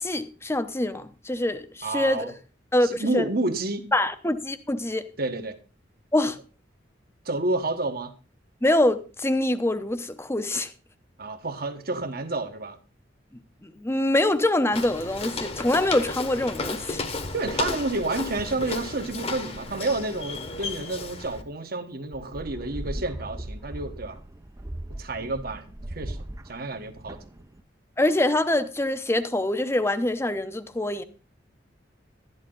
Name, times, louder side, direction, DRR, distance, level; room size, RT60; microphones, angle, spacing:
voice 1, 0.0-2.3 2.7-3.3 3.9-5.1 6.1-6.4 8.6-10.7 13.6-17.0 28.0-31.0, left 1 dB, 15° left, 0.8 m, -24 dB
voice 2, 1.8-2.3 2.8-3.9 5.2-5.6 7.2-8.1 11.2-12.8 17.3-24.2 25.0-25.7 25.9-26.2 26.4-27.2, right 2 dB, 55° right, 1.3 m, -30 dB
Walk footsteps, 14.7-21.4, left 3 dB, 35° left, 1.1 m, -33 dB
sound 1, 22.1-27.6, right 1 dB, 15° right, 0.6 m, -38 dB
12.0 x 11.0 x 3.9 m
head